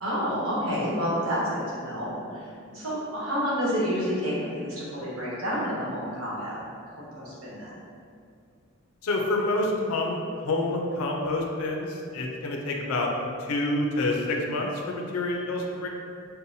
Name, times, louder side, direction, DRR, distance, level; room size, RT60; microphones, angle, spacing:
voice 1, 0.0-6.6 7.0-7.7, equal, 80° right, -7 dB, 1.1 m, -29 dB
voice 2, 9.0-13.1 13.4-15.9, left 2 dB, 85° left, 0 dB, 0.5 m, -28 dB
5.3 x 2.1 x 2.6 m, 2.4 s
head